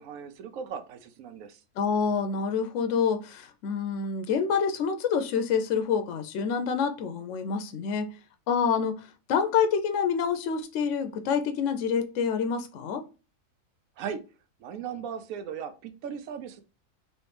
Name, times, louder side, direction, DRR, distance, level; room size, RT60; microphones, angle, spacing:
voice 1, 0.0-1.6 14.0-14.2 14.6-16.6, right 7 dB, 80° right, 1.0 m, -37 dB
voice 2, 1.8-8.1 8.5-13.0, left 6 dB, 70° left, 0.9 m, -27 dB
3.1 x 3.1 x 3.2 m
omnidirectional pair, 1.4 m